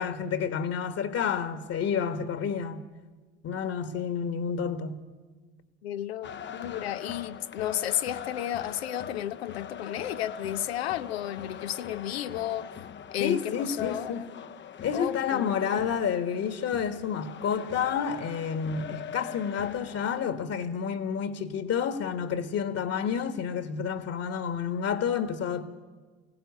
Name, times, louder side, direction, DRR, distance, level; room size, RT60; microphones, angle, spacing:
voice 1, 0.0-2.8 3.4-5.0 13.2-14.2 14.8-25.7, left 7 dB, 55° left, 1.7 m, -30 dB
voice 2, 5.8-12.7 13.1-14.3 14.9-16.0, left 11 dB, 80° left, 0.7 m, -33 dB
sound 1, 6.2-20.3, left 8 dB, 35° left, 0.8 m, -42 dB
23.5 x 17.0 x 9.6 m
hypercardioid pair, 55°, 31 cm